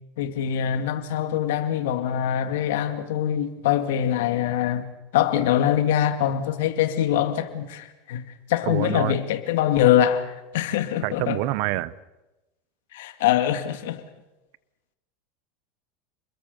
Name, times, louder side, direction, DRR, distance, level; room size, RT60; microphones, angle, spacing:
voice 1, 0.2-4.9 5.1-11.4 12.9-14.0, left 10 dB, 80° left, 2.2 m, -23 dB
voice 2, 8.7-9.1 11.0-11.9, right 17 dB, 60° right, 0.9 m, -26 dB
28.5 x 21.5 x 7.0 m
supercardioid pair, 145°, 0 cm